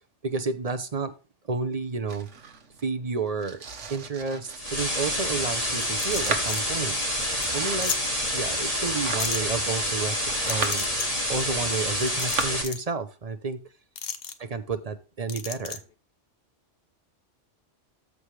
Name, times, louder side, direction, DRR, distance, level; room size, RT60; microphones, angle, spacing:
voice 1, 0.2-1.1 1.5-2.3 2.8-3.6 3.9-7.0 7.5-7.9 8.3-10.9 11.3-13.6 14.4-15.8, right 4 dB, 40° right, 10 dB, 0.7 m, -30 dB
Domestic sounds home sounds, 2.1-12.4, right 5 dB, 80° right, 1.5 m, -37 dB
sound 1, 4.5-12.6, equal, 30° left, 2.3 m, -28 dB
sound 2, 5.8-6.6 7.0-7.1 7.4-7.5 7.8-8.0 9.2-9.4 10.5-11.1 12.0-12.9 14.0-14.3 15.3-15.8, left 7 dB, 55° left, 1.0 m, -33 dB
13.5 x 4.9 x 3.2 m, 0.33 s
omnidirectional pair, 1.2 m